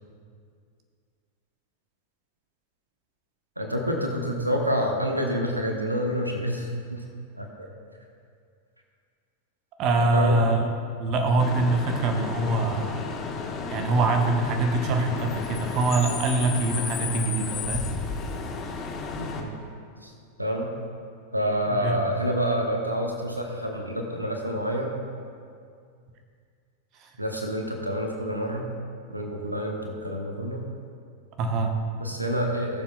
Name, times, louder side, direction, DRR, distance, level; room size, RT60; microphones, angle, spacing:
voice 1, 3.6-7.0 7.4-7.7 10.1-10.4 19.1-19.5 20.0-20.1 20.4-20.7 21.3-25.0 27.2-28.7 29.1-30.6 31.9-32.8, equal, 85° right, 2 dB, 1.1 m, -28 dB
voice 2, 9.8-10.7 11.0-13.0 13.7-17.8 21.7-22.0 27.0-27.1 31.4-31.7, right 2 dB, 40° right, 4 dB, 1.0 m, -24 dB
Bus / Idling / Screech, 11.4-19.4, left 4 dB, 30° left, 1.2 m, -33 dB
19.0 x 7.2 x 2.3 m, 2.3 s
figure-of-eight pair, 90°, 0 cm